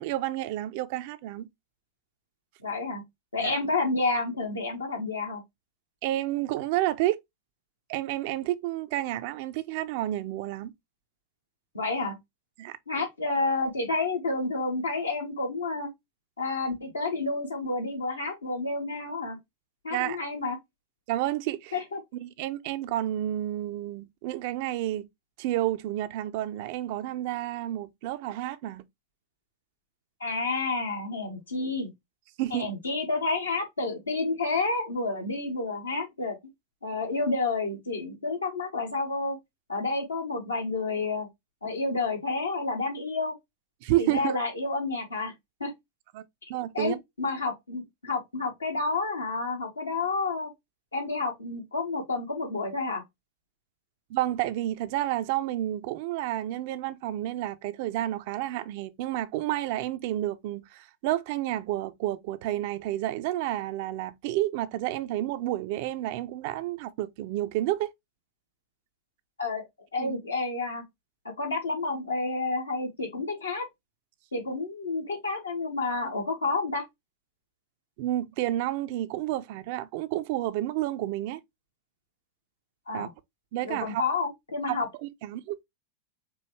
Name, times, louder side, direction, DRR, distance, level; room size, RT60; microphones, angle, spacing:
voice 1, 0.0-1.5 3.4-3.5 6.0-7.2 7.9-10.7 12.6-12.8 19.9-20.2 21.1-21.7 22.2-25.1 25.4-28.8 32.4-32.7 43.8-44.4 46.1-46.2 46.5-47.0 54.1-67.9 70.0-70.1 78.0-81.4 82.9-83.1 83.5-84.0 84.7-85.6, right 14 dB, 50° right, 0.4 m, -30 dB
voice 2, 2.6-3.0 3.3-5.4 11.7-12.1 12.9-15.9 16.4-19.4 19.8-20.6 21.7-22.0 30.2-31.9 32.5-36.4 36.8-39.4 39.7-41.3 41.6-43.3 44.0-45.3 45.6-45.7 46.7-50.5 50.9-53.0 69.4-69.6 69.9-70.8 71.2-73.6 74.3-76.8 82.9-83.1 83.6-84.9, left 3 dB, 75° left, 1.4 m, -30 dB
4.6 x 2.6 x 3.0 m
figure-of-eight pair, 90°, 0 cm